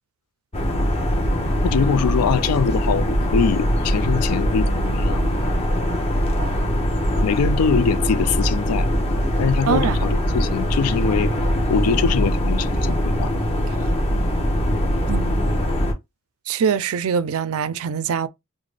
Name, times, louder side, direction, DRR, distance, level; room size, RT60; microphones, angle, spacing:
sound 1, 0.5-15.9, equal, 25° left, 0.8 m, -21 dB
voice 1, 1.6-5.2 7.2-8.9 9.4-11.3 11.7-13.3, left 6 dB, 85° left, 0.4 m, -23 dB
voice 2, 9.7-10.1 15.1-15.4 16.5-18.3, right 7 dB, 70° right, 0.4 m, -23 dB
3.8 x 2.1 x 3.2 m
head